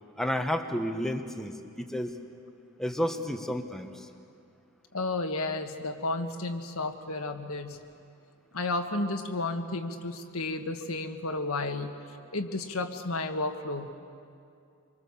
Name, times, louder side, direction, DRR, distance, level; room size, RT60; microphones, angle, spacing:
voice 1, 0.2-2.1 2.8-4.1, equal, ahead, 5 dB, 1.3 m, -31 dB
voice 2, 4.9-7.8 8.5-11.9 12.3-13.9, left 2 dB, 75° left, 5 dB, 1.6 m, -32 dB
26.0 x 24.5 x 7.2 m, 2.4 s
head